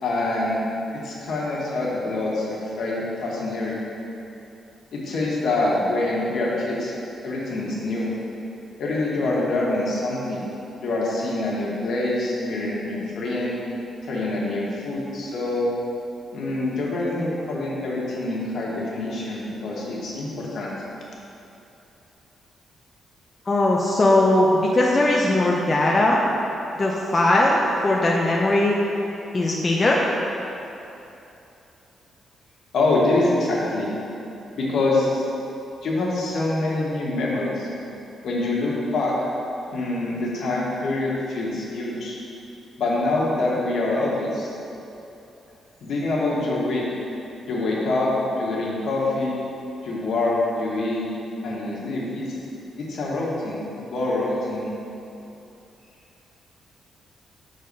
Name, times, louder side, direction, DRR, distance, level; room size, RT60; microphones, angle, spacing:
voice 1, 0.0-0.6 0.9-3.8 4.9-6.9 7.2-8.1 8.8-10.5 10.8-13.6 14.0-15.7 16.3-20.7 32.7-33.9 34.6-35.2 35.8-37.7 38.2-39.2 39.7-42.1 42.8-44.5 45.8-46.8 47.5-48.1 48.4-49.4 49.8-51.0 51.4-52.3 52.8-54.7, left 2 dB, 60° left, -4 dB, 1.4 m, -25 dB
voice 2, 23.5-26.2 26.8-28.7 29.3-30.0, left 1 dB, 25° left, -3 dB, 0.5 m, -19 dB
6.6 x 4.0 x 5.3 m, 2.8 s
cardioid pair, 150°, 0 cm